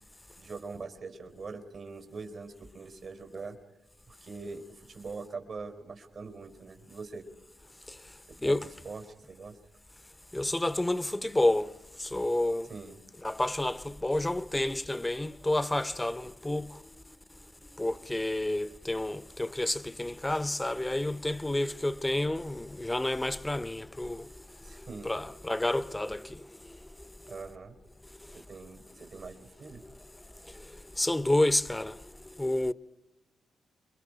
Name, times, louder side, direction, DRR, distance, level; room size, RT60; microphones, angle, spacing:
voice 1, 0.4-3.6 4.1-7.3 8.4-9.6 12.7-13.0 24.6-25.1 27.2-27.8 28.3-29.8, right 4 dB, 65° right, 4.0 m, -43 dB
voice 2, 10.3-11.7 12.0-12.7 13.2-16.7 17.8-24.3 25.0-26.4 31.0-32.0 32.4-32.7, left 1 dB, 15° left, 0.8 m, -29 dB
29.5 x 22.5 x 5.1 m
supercardioid pair, 55°, 0 cm